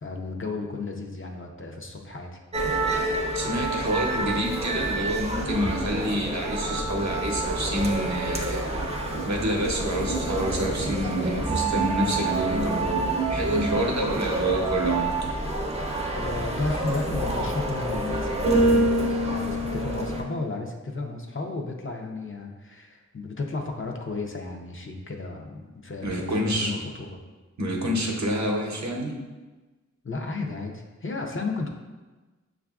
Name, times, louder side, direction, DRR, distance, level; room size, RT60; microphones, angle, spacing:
voice 1, 0.0-2.3 16.2-27.2 30.0-31.7, left 3 dB, 45° left, 2 dB, 0.5 m, -33 dB
sound 1, 2.5-20.2, right 2 dB, 20° right, 0.5 m, -27 dB
voice 2, 3.3-8.7 9.3-15.2 26.0-26.7 27.6-29.1, equal, 65° right, -1 dB, 0.7 m, -28 dB
6.4 x 2.4 x 2.3 m, 1.2 s
wide cardioid pair, 55°, 30 cm